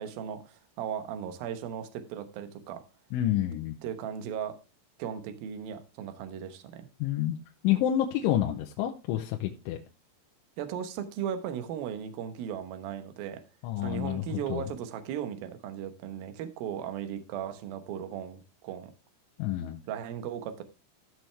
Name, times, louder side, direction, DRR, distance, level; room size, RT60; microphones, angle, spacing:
voice 1, 0.0-2.8 3.8-4.6 5.0-6.9 10.6-13.4 13.8-18.9 19.9-20.6, right 9 dB, 70° right, 2.4 m, -37 dB
voice 2, 3.1-3.7 7.0-7.4 7.6-9.8 13.6-14.7 19.4-19.8, left 12 dB, 80° left, 3.2 m, -28 dB
15.5 x 6.1 x 3.3 m
omnidirectional pair, 5.5 m